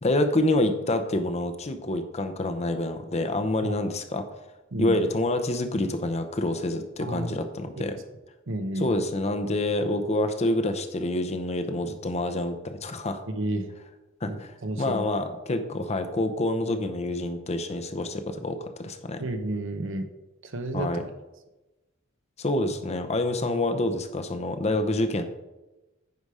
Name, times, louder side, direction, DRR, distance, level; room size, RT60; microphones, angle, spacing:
voice 1, 0.0-4.2 4.8-8.0 8.8-13.2 14.2-19.2 20.7-21.0 22.4-25.2, left 1 dB, 35° left, 7 dB, 0.7 m, -27 dB
voice 2, 7.0-7.4 7.8-7.9 8.5-9.0 13.3-13.7 14.3-15.0 19.2-20.1 20.4-21.1, right 1 dB, 65° right, 6 dB, 0.9 m, -31 dB
9.5 x 5.1 x 4.9 m, 1.0 s
head